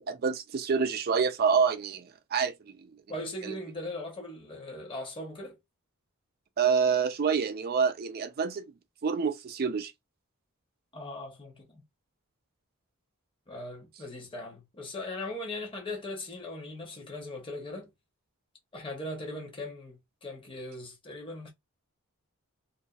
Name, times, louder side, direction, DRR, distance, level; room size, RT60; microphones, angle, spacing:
voice 1, 0.0-2.9 3.5-3.6 6.6-8.7 9.0-9.9, right 6 dB, 45° right, 0.4 m, -27 dB
voice 2, 3.1-5.6 10.9-11.8 13.5-17.9 18.7-21.5, left 1 dB, 25° left, 0.9 m, -39 dB
2.5 x 2.4 x 2.3 m
head